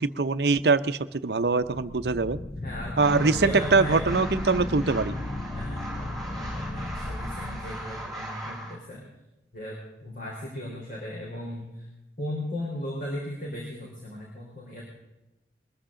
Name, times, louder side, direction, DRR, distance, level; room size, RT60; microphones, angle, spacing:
voice 1, 0.0-2.4 3.0-5.2, right 4 dB, 65° right, 12 dB, 0.7 m, -23 dB
sound 1, 1.5-8.5, left 1 dB, 25° left, 0.4 m, -35 dB
voice 2, 2.6-4.2 5.5-9.1 9.5-11.9 12.2-14.8, left 1 dB, 50° left, -3 dB, 4.0 m, -36 dB
sound 2, 3.0-8.8, right 1 dB, ahead, 4.6 m, -39 dB
21.5 x 15.0 x 3.8 m, 0.96 s
head